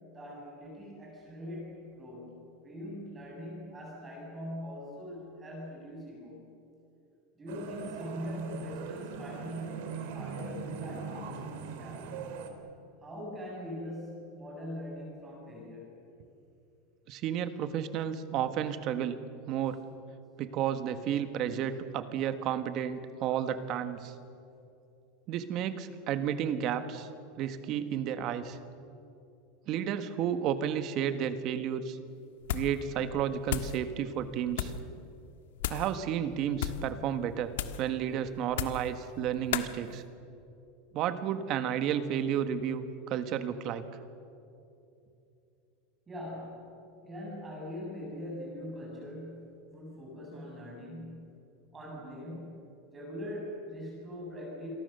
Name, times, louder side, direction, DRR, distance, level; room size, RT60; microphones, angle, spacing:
voice 1, 0.1-2.4 2.6-6.4 7.3-12.1 13.0-16.0 46.1-51.4 51.7-54.7, left 1 dB, 15° right, -3 dB, 7.1 m, -42 dB
sound 1, 7.5-12.5, right 5 dB, 60° right, 3.2 m, -40 dB
voice 2, 17.1-19.8 20.4-24.1 25.3-27.1 27.4-28.6 29.7-32.0 32.5-34.7 35.7-37.5 37.8-40.0 40.9-43.8, right 9 dB, 35° right, 10 dB, 1.5 m, -32 dB
sound 2, 32.4-32.8 33.1-33.8 34.5-34.8 35.6-35.9 36.5-36.9 37.5-37.9 38.5-38.9 39.5-39.7, left 11 dB, 85° left, 1.5 m, -34 dB
28.5 x 23.0 x 6.8 m, 2.7 s
supercardioid pair, 165°, 0 cm